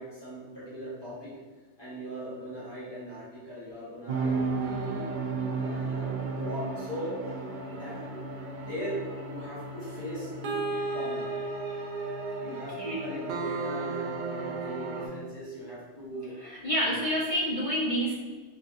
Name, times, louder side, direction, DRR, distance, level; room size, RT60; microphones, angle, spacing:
voice 1, 0.0-1.3 1.8-5.1 5.5-7.1 7.5-8.0 8.5-10.6 10.9-11.3 12.4-16.4 16.7-17.2, equal, 20° left, -11 dB, 1.5 m, -39 dB
sound 1, 4.1-15.1, right 3 dB, 60° right, 0.5 m, -33 dB
voice 2, 7.6-7.9 12.8-13.0 16.2-18.1, equal, 50° left, -5 dB, 0.4 m, -29 dB
3.2 x 2.8 x 3.7 m, 1.4 s
omnidirectional pair, 1.2 m